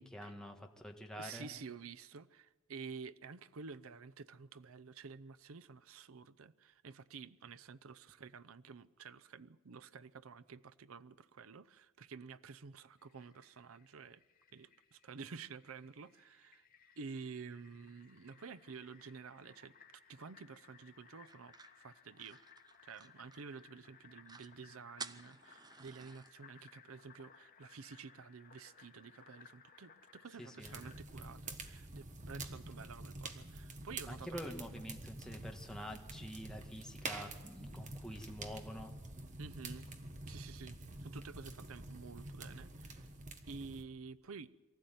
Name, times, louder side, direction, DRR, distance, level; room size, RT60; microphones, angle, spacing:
voice 1, 0.0-1.5 30.4-30.8 34.1-38.9, equal, 5° left, 1.6 m, -47 dB
voice 2, 1.2-14.2 14.5-16.7 17.0-19.8 20.1-22.4 22.8-34.4 39.4-39.9 40.3-43.1 43.5-44.5, right 5 dB, 80° right, 0.6 m, -51 dB
Fill (with liquid), 13.0-31.0, left 6 dB, 45° left, 1.9 m, -63 dB
sound 1, 21.3-23.7 24.0-24.1 24.3-24.5 25.0-26.3, right 5 dB, 20° right, 0.6 m, -52 dB
sound 2, 30.6-43.8, right 2 dB, 35° right, 1.6 m, -48 dB
23.5 x 14.0 x 9.3 m
head